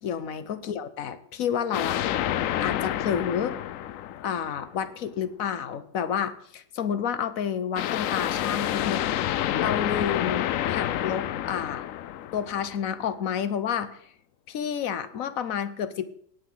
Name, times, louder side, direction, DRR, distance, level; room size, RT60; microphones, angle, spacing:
voice 1, 0.0-2.0 2.6-3.6 4.2-9.1 9.5-11.9 12.3-14.0 14.5-16.1, left 8 dB, 55° left, 13 dB, 1.1 m, -30 dB
sound 1, 1.7-4.9 7.8-12.9, left 12 dB, 80° left, 0.7 m, -29 dB
18.0 x 8.1 x 3.8 m, 0.65 s
omnidirectional pair, 2.0 m